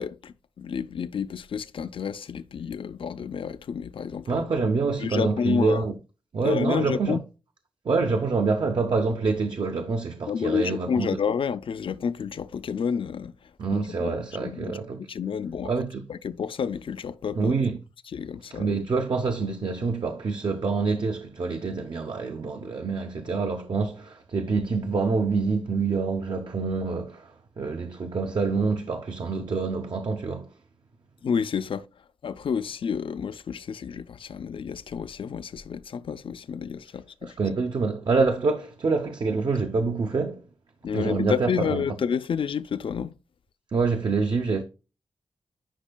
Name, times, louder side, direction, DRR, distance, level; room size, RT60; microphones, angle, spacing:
voice 1, 0.0-4.4 5.0-5.8 6.4-7.2 10.3-13.3 13.7-14.8 15.1-15.7 16.1-17.5 18.1-18.7 31.2-31.9 32.2-37.4 40.8-43.1, left 6 dB, 60° left, 0.4 m, -30 dB
voice 2, 4.3-5.9 6.3-7.2 7.8-11.1 13.6-15.0 15.6-16.0 17.3-17.8 18.6-30.5 37.2-40.4 40.9-42.0 43.7-44.6, right 4 dB, 50° right, 0.7 m, -26 dB
10.0 x 5.3 x 2.2 m
wide cardioid pair, 170°, 10 cm